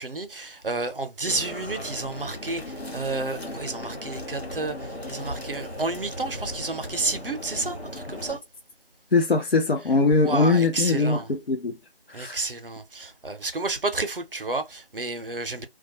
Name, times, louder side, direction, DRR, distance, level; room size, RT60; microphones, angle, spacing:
voice 1, 0.0-8.4 10.2-11.3 12.1-15.7, right 3 dB, 60° right, 0.6 m, -31 dB
sound 1, 1.3-8.4, left 1 dB, 85° left, 1.1 m, -37 dB
voice 2, 9.1-11.8 12.1-12.4, left 3 dB, 70° left, 0.5 m, -22 dB
2.2 x 2.2 x 2.8 m
figure-of-eight pair, 180°, 31 cm